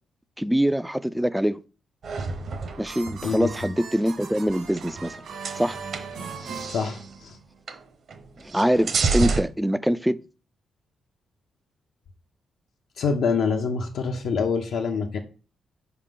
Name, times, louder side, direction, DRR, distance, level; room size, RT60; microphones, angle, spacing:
voice 1, 0.4-1.6 2.8-5.2 5.6-5.8 8.4-10.2, equal, 5° right, 0.3 m, -24 dB
sound 1, 2.0-3.5 4.3-5.1 5.4-7.1 7.7-7.8 8.1-9.4, right 4 dB, 55° right, 0.9 m, -29 dB
sound 2, 2.3-7.6, right 5 dB, 75° right, 1.7 m, -39 dB
voice 2, 6.7-7.4 13.0-15.2, left 5 dB, 75° left, 0.7 m, -26 dB
6.6 x 4.9 x 3.7 m
cardioid pair, 125°, 0 cm